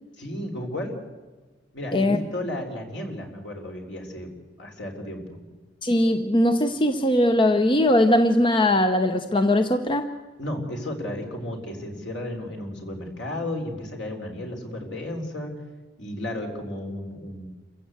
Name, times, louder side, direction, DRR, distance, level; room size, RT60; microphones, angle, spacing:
voice 1, 0.2-0.9 1.7-4.3 4.6-5.4 10.4-15.6 16.0-17.5, left 1 dB, 65° left, 2 dB, 4.0 m, -33 dB
voice 2, 5.8-10.1, left 1 dB, 25° left, 7 dB, 0.8 m, -20 dB
27.5 x 15.5 x 8.1 m, 1.2 s
head